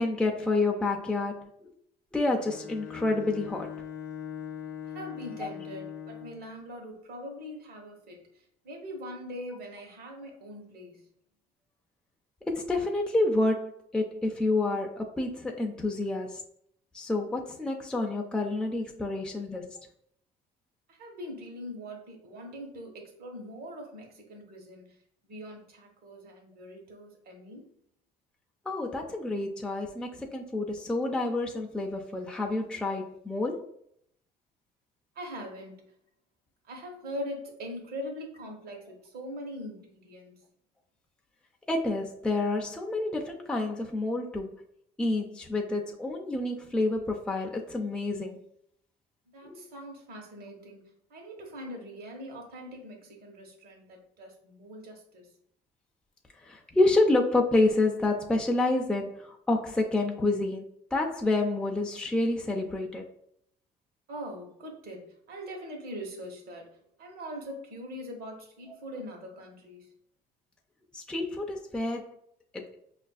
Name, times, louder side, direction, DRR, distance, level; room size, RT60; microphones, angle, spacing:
voice 1, 0.0-1.7 2.1-3.7 12.5-16.4 16.9-19.8 28.7-33.7 41.7-44.6 45.0-48.4 49.4-49.8 56.4-63.0 70.9-72.1 72.5-72.6, left 2 dB, 5° left, 0.5 m, -28 dB
Bowed string instrument, 2.4-6.5, left 9 dB, 70° left, 0.6 m, -41 dB
voice 2, 4.8-11.1 20.9-25.0 25.2-27.7 35.1-35.8 36.7-40.4 49.3-55.3 64.1-69.9, equal, 65° right, 1.1 m, -42 dB
5.2 x 2.5 x 2.3 m
cardioid pair, 110°, 17 cm